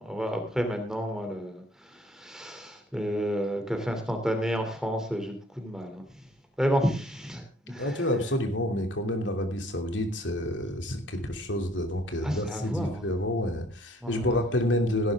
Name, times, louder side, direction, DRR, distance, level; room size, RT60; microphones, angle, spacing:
voice 1, 0.0-6.2 6.6-8.1 12.2-13.1 14.0-14.4, equal, 5° right, 4 dB, 2.9 m, -31 dB
voice 2, 7.8-15.1, left 1 dB, 90° left, 5 dB, 2.9 m, -29 dB
16.5 x 12.0 x 3.6 m, 0.36 s
head